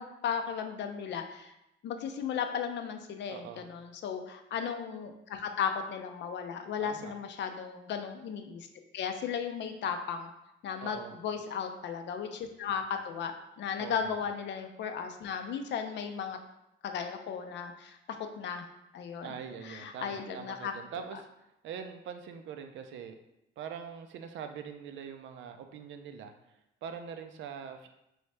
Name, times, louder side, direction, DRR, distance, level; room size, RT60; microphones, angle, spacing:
voice 1, 0.0-1.5 1.8-8.7 8.9-10.3 10.6-16.4 16.8-18.7 18.9-19.3 19.6-20.7, left 7 dB, 65° left, 6 dB, 0.5 m, -35 dB
voice 2, 3.3-3.7 6.8-7.1 10.8-11.2 13.8-14.2 19.2-23.2 23.6-27.9, right 7 dB, 75° right, 7 dB, 0.4 m, -43 dB
3.1 x 2.7 x 3.3 m, 0.86 s
cardioid pair, 90°, 20 cm